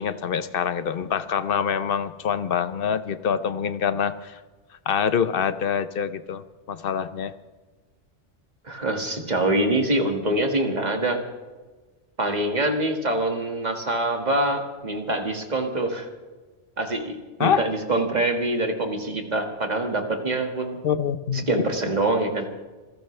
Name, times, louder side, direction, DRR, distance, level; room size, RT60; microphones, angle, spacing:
voice 1, 0.0-4.4 4.9-6.4 6.7-7.3 17.4-17.6 20.8-21.7, left 7 dB, 55° left, 13 dB, 0.8 m, -25 dB
voice 2, 8.6-11.2 12.2-16.1 16.8-20.8 21.5-22.5, right 1 dB, 35° right, 3 dB, 2.0 m, -25 dB
26.5 x 15.0 x 3.3 m, 1.3 s
omnidirectional pair, 1.3 m